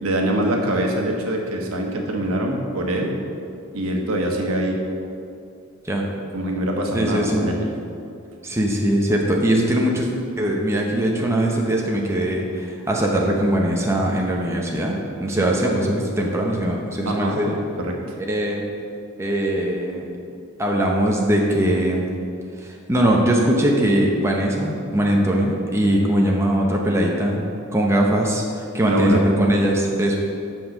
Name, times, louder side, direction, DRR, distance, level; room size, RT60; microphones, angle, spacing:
voice 1, 0.0-3.1 3.7-4.8 6.3-7.7 15.4-15.5 17.0-17.4 17.8-17.9 28.9-29.2, right 1 dB, 85° right, 1 dB, 1.3 m, -24 dB
voice 2, 6.9-7.4 8.4-10.1 10.4-17.6 18.2-18.6 19.2-20.1 20.6-22.1 22.6-27.4 27.7-30.2, right 1 dB, 10° right, -1 dB, 0.8 m, -21 dB
7.5 x 5.7 x 6.5 m, 2.5 s
head